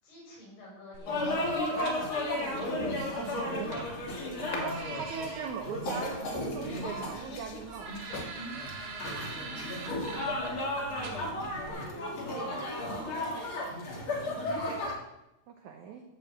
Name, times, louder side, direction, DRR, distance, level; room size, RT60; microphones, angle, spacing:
voice 1, 0.0-1.3 9.5-12.9, left 1 dB, 65° left, -4 dB, 8.3 m, -51 dB
sound 1, 0.9-11.7, right 4 dB, 60° right, 3.4 m, -45 dB
sound 2, 1.1-14.9, left 1 dB, 40° left, 2.1 m, -34 dB
sound 3, 1.8-2.2 2.7-3.6 4.5-4.7 5.2-5.3 5.8-5.9 6.4-7.2 7.6-7.7 8.1-8.4 8.8-8.9 9.4-9.5 9.9-10.8 11.2-11.3, left 3 dB, 90° left, 4.5 m, -40 dB
voice 2, 3.0-3.7 4.5-7.9 15.5-16.0, right 6 dB, 85° right, 4 dB, 1.7 m, -40 dB
13.5 x 7.2 x 7.4 m, 0.92 s
omnidirectional pair, 4.9 m